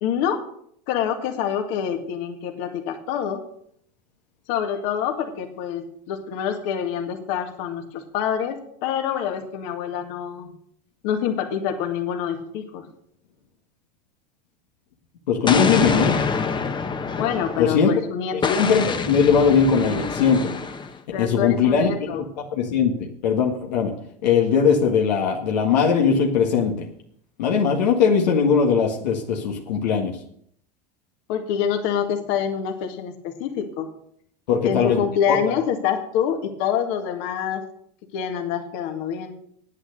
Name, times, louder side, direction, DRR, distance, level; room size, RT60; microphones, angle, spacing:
voice 1, 0.0-0.5 0.9-3.4 4.5-8.6 8.8-10.5 11.0-12.9 17.2-18.6 21.1-22.2 31.3-33.9 34.6-37.6 38.1-39.3, left 8 dB, 65° left, 5 dB, 2.0 m, -26 dB
voice 2, 15.3-16.2 17.6-17.9 18.5-20.6 21.2-22.3 22.5-22.9 23.2-23.9 24.2-26.8 27.4-30.2 34.5-35.0 35.3-35.5, left 6 dB, 85° left, 1 dB, 1.7 m, -20 dB
Explosion, 15.5-17.9 18.4-21.0, left 5 dB, 20° left, 1.0 m, -26 dB
9.7 x 8.7 x 6.6 m, 0.67 s
hypercardioid pair, 100°, 21 cm